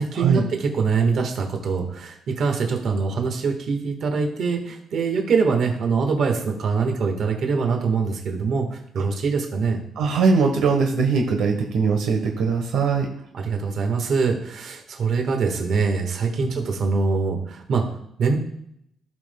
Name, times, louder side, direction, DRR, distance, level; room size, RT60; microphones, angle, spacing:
voice 1, 0.0-9.8 13.3-17.8 18.2-18.4, right 5 dB, 55° right, 3 dB, 1.5 m, -23 dB
voice 2, 10.0-13.1 16.4-16.7, right 5 dB, 85° right, 2 dB, 1.2 m, -21 dB
16.0 x 5.4 x 2.2 m, 0.73 s
cardioid pair, 140°, 0 cm